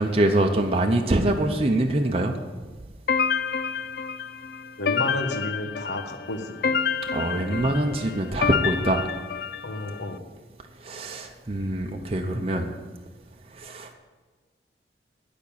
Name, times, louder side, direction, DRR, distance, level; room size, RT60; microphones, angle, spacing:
voice 1, 0.0-2.3 7.1-9.0 10.8-12.7 13.5-13.9, right 1 dB, 35° right, 3 dB, 0.7 m, -24 dB
sound 1, 3.1-10.0, left 6 dB, 55° left, 0.4 m, -28 dB
voice 2, 4.8-6.8 9.6-10.2, left 1 dB, 80° left, 5 dB, 1.3 m, -31 dB
11.0 x 5.3 x 8.5 m, 1.4 s
head